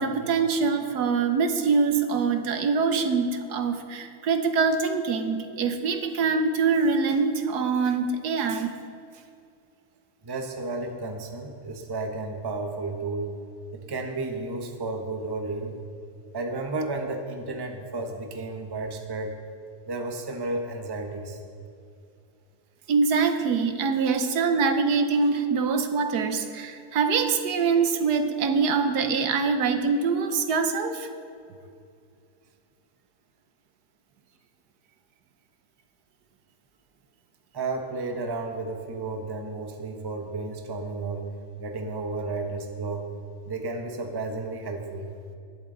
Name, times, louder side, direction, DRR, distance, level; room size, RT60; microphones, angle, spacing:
voice 1, 0.0-8.7 22.9-31.1, right 5 dB, 80° right, 7 dB, 1.5 m, -24 dB
voice 2, 10.2-13.3 13.7-15.7 16.3-19.3 19.9-21.4 37.5-41.3 41.6-43.1 43.4-45.1, right 3 dB, 20° right, 4 dB, 0.8 m, -32 dB
20.5 x 7.6 x 3.9 m, 2.4 s
omnidirectional pair, 1.7 m